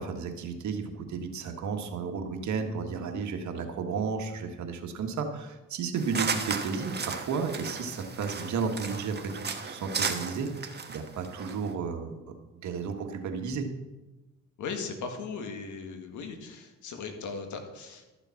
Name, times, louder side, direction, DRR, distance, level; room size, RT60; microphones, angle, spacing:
voice 1, 0.0-12.1 12.6-13.7, right 5 dB, 70° right, 5 dB, 1.7 m, -33 dB
sound 1, 6.0-11.7, right 5 dB, 35° right, 1.4 m, -35 dB
voice 2, 14.6-18.0, left 5 dB, 75° left, 5 dB, 1.9 m, -38 dB
13.0 x 6.9 x 5.8 m, 1.1 s
cardioid pair, 90°, 30 cm